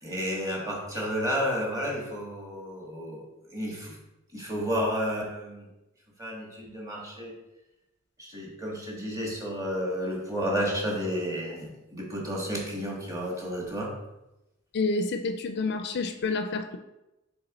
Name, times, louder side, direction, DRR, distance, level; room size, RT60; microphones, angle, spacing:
voice 1, 0.0-3.2 3.5-4.0 4.3-5.7 6.2-7.3 8.2-14.0, equal, 15° right, -2 dB, 1.6 m, -31 dB
voice 2, 14.7-16.8, left 3 dB, 55° left, 8 dB, 0.4 m, -29 dB
6.9 x 3.6 x 4.0 m, 0.95 s
head